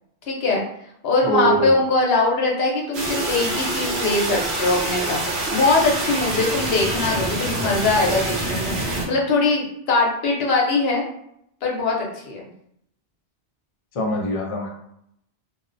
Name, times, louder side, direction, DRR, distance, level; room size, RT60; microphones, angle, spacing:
voice 1, 0.3-0.6 1.0-5.2 5.5-11.0 11.6-12.5, left 3 dB, 75° left, -1 dB, 0.9 m, -21 dB
voice 2, 1.2-1.8 13.9-14.7, right 1 dB, 50° left, 0 dB, 0.4 m, -23 dB
sound 1, 2.9-9.1, right 1 dB, 85° right, 1.0 m, -26 dB
2.6 x 2.1 x 2.5 m, 0.75 s
omnidirectional pair, 1.1 m